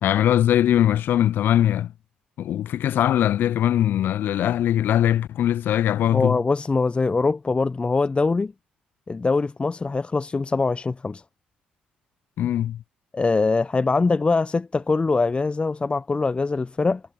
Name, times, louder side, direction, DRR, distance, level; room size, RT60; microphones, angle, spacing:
voice 1, 0.0-1.9 2.4-6.4 12.4-12.8, left 11 dB, 60° left, 0.3 m, -21 dB
voice 2, 6.1-8.5 9.1-11.2 13.1-17.0, left 3 dB, 30° left, 0.8 m, -23 dB
hypercardioid pair, 45°, 4 cm